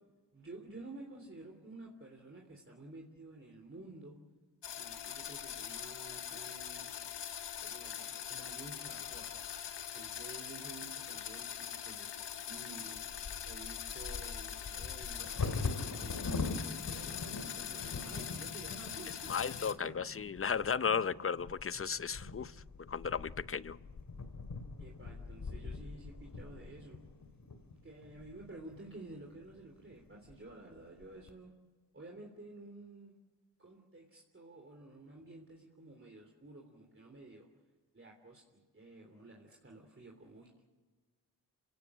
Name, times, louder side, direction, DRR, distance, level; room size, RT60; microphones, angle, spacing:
voice 1, 0.3-4.2 4.7-6.9 7.6-9.4 9.9-13.1 13.4-15.6 16.0-20.0 24.8-27.0 27.7-31.5 31.9-33.2 33.6-37.5 37.9-40.6, right 2 dB, 30° right, 3.5 m, -52 dB
sound 1, 4.6-19.7, left 9 dB, 90° left, 1.2 m, -43 dB
Bird vocalization bird call bird song / Wind / Thunder, 13.0-28.8 29.5-29.6 29.9-30.3 30.8-31.3, left 3 dB, 55° left, 2.6 m, -43 dB
voice 2, 19.3-22.5 22.9-23.8, left 6 dB, 35° left, 0.6 m, -34 dB
27.5 x 17.0 x 8.6 m
cardioid pair, 70°, 41 cm